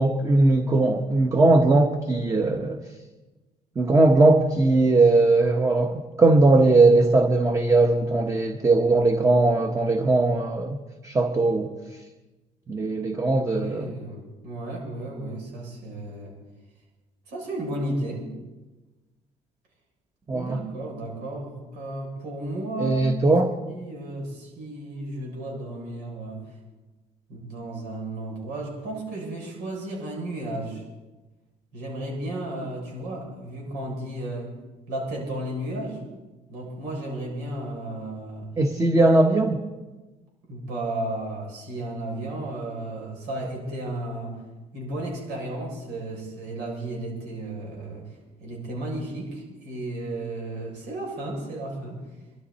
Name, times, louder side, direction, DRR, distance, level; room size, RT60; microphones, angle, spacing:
voice 1, 0.0-2.8 3.8-10.8 11.0-11.7 12.7-13.9 20.3-20.6 22.8-23.5 38.6-39.6, right 2 dB, 20° right, 5 dB, 1.3 m, -19 dB
voice 2, 13.3-16.3 17.3-18.3 20.3-23.1 23.7-26.4 27.3-30.8 31.7-34.5 34.9-36.0 36.5-38.5 40.5-44.4 44.7-48.1 48.4-52.0, right 1 dB, 85° right, -1 dB, 7.1 m, -33 dB
24.0 x 13.5 x 4.3 m, 1.2 s
cardioid pair, 110°, 17 cm